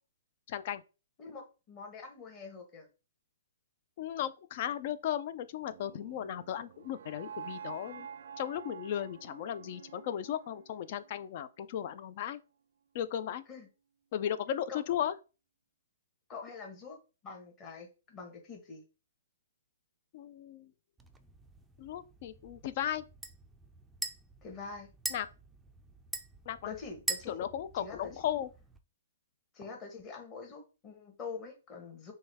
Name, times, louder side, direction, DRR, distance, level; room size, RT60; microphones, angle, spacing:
voice 1, 0.5-0.8 4.0-8.1 8.4-12.4 12.9-13.4 14.1-15.1 20.1-20.7 21.8-23.0 25.1-25.3 26.5-26.7 27.3-28.5, left 10 dB, 45° left, 0.4 m, -36 dB
voice 2, 1.2-2.9 13.5-13.7 14.7-14.8 16.3-17.0 17.2-18.8 24.4-24.9 26.6-27.3 27.7-28.1 29.5-32.1, left 4 dB, 25° left, 1.4 m, -45 dB
sound 1, 5.6-11.7, right 7 dB, 70° right, 0.4 m, -48 dB
sound 2, 21.0-28.8, right 2 dB, 5° right, 0.4 m, -43 dB
6.1 x 2.3 x 3.5 m
hypercardioid pair, 140°, 0 cm